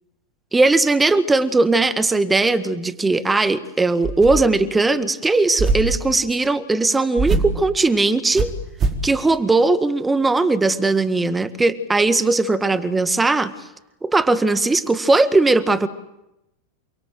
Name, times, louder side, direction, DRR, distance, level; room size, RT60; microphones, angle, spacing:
voice 1, 0.5-8.5 9.0-13.5 14.0-15.9, right 3 dB, 10° right, 13 dB, 1.7 m, -18 dB
sound 1, 4.0-4.6 5.6-6.0 7.2-7.6 8.3-9.1, right 3 dB, 30° right, 4.5 m, -22 dB
28.5 x 25.5 x 7.7 m, 0.90 s
figure-of-eight pair, 90°, 0 cm